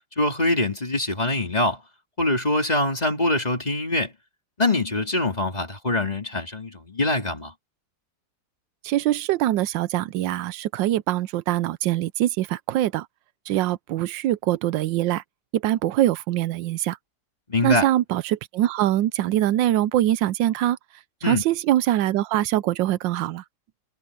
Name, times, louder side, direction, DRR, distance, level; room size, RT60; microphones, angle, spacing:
voice 1, 0.2-1.8 2.2-4.1 4.6-7.5 17.5-17.9 21.2-21.4, left 2 dB, 20° left, 2.6 m, -24 dB
voice 2, 8.8-13.1 13.5-15.2 15.5-17.0 17.6-20.8 21.2-23.4, right 13 dB, 85° right, 1.3 m, -23 dB
omnidirectional pair, 2.0 m